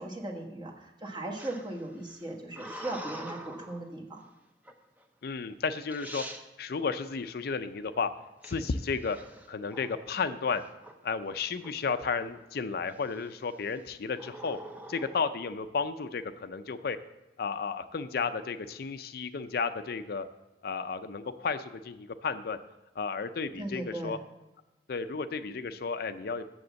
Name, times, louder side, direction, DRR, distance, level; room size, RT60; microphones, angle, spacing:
voice 1, 0.0-4.2 23.6-24.2, right 1 dB, 25° right, 0 dB, 1.3 m, -38 dB
sound 1, 1.4-3.9 4.6-5.0 5.6-5.7 5.9-6.4 8.4-10.1 10.5-10.9 11.2-12.4 12.9-13.3 14.1-15.2, right 1 dB, 10° right, 0.7 m, -45 dB
voice 2, 5.2-6.2 6.6-8.1 8.4-9.2 9.5-10.6 11.0-14.6 14.9-17.0 17.4-20.3 20.6-22.6 23.0-24.2 24.9-26.4, left 5 dB, 60° left, 10 dB, 0.5 m, -33 dB
7.9 x 7.2 x 6.9 m, 1.0 s
head